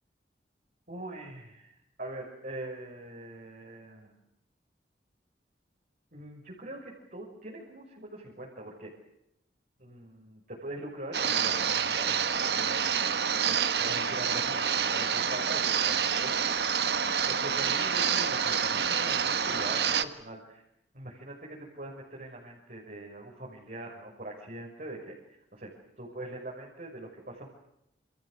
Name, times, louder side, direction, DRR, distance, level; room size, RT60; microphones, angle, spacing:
voice 1, 0.9-4.1 6.1-8.9 9.8-14.6 14.9-16.8 17.2-20.6 20.9-25.2 25.5-27.5, right 1 dB, 50° right, -2 dB, 6.3 m, -43 dB
sound 1, 11.1-20.0, right 7 dB, 65° right, 1.4 m, -28 dB
29.0 x 28.0 x 6.7 m, 0.79 s
head